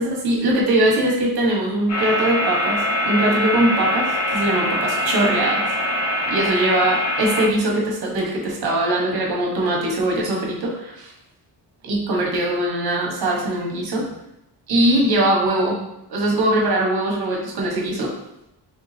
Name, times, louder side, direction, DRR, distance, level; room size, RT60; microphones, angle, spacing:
voice 1, 0.0-5.7 6.3-11.1 11.8-14.1 14.7-15.8 16.1-18.1, right 1 dB, 60° right, -2 dB, 1.3 m, -21 dB
sound 1, 1.9-7.5, left 1 dB, 75° left, 1.0 m, -23 dB
3.5 x 3.5 x 3.2 m, 0.83 s
cardioid pair, 140°, 43 cm